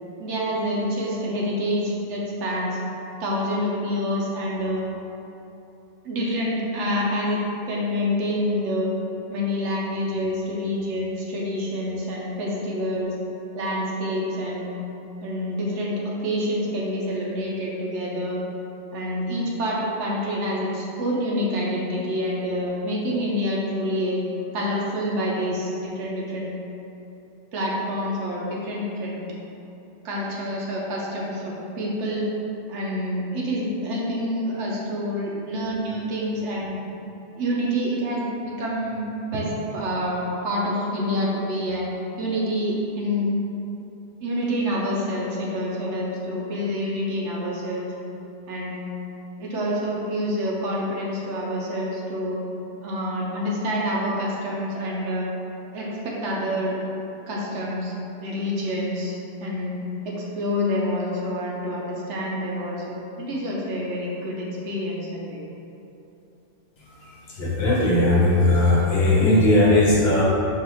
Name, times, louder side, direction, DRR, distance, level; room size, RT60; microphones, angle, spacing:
voice 1, 0.2-2.8 3.2-4.8 6.0-7.4 7.7-8.9 9.3-13.1 13.5-14.8 15.2-18.4 18.9-24.2 24.5-26.5 27.5-29.2 30.0-32.2 32.7-36.8 37.4-39.1 39.3-41.8 42.2-43.3 44.2-47.9 48.5-48.8 49.4-52.4 52.8-55.3 55.7-56.8 57.3-57.9 58.2-59.7 60.0-65.4, equal, 80° right, -4 dB, 1.0 m, -27 dB
voice 2, 67.4-70.2, left 1 dB, 60° left, -5 dB, 1.0 m, -18 dB
4.7 x 2.5 x 2.9 m, 2.9 s
omnidirectional pair, 1.2 m